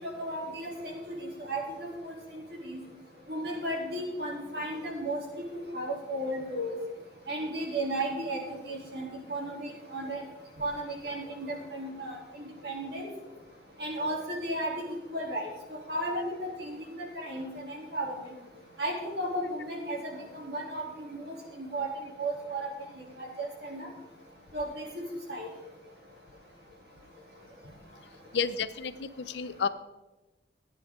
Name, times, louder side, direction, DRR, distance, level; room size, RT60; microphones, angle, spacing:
voice 1, 0.0-2.8 3.3-5.2 5.7-6.7 7.3-10.2 10.6-13.1 13.8-14.8 15.1-15.5 15.9-18.1 18.8-21.9 22.2-22.7 23.2-23.9 24.5-24.8 25.3-25.5, right 1 dB, 55° right, -1 dB, 3.1 m, -34 dB
voice 2, 28.3-29.7, left 6 dB, 65° left, 13 dB, 0.5 m, -31 dB
14.5 x 9.4 x 3.7 m, 1.1 s
head